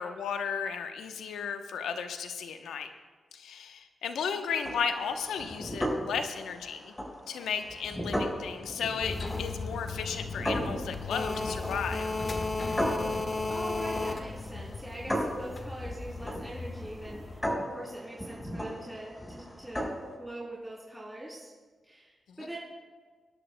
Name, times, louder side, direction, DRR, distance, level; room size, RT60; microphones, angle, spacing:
voice 1, 0.0-2.9 3.3-6.9 7.3-12.2 22.3-22.4, left 6 dB, 85° left, 7 dB, 0.8 m, -34 dB
sound 1, 4.6-20.2, equal, 15° left, 4.6 m, -37 dB
sound 2, 9.0-17.4, left 3 dB, 50° left, 1.4 m, -35 dB
voice 2, 13.5-21.5 21.8-22.6, right 1 dB, 5° right, -6 dB, 3.2 m, -43 dB
24.5 x 11.0 x 2.2 m, 1.4 s
supercardioid pair, 50°, 0 cm